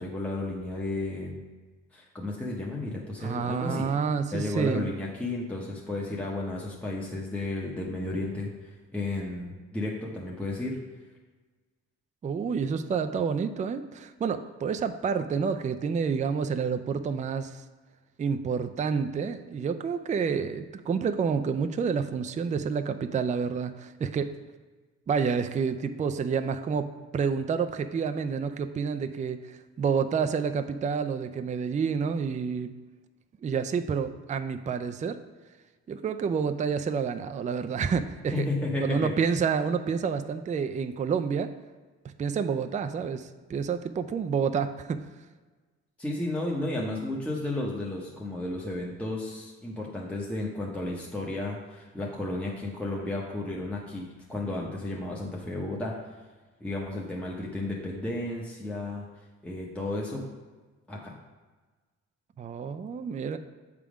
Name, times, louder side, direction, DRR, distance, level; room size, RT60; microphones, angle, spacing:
voice 1, 0.0-1.4 1.9-3.9 4.3-10.8 38.3-39.1 46.0-56.0 56.6-59.1 59.4-60.3 60.9-61.1, left 2 dB, 5° left, -3 dB, 0.9 m, -33 dB
voice 2, 3.2-4.9 12.2-17.6 18.2-24.3 25.1-32.7 33.4-35.2 35.9-38.5 38.8-41.5 42.2-45.0 62.4-63.4, right 6 dB, 25° right, 8 dB, 0.4 m, -29 dB
7.4 x 3.6 x 4.9 m, 1.3 s
cardioid pair, 90°, 30 cm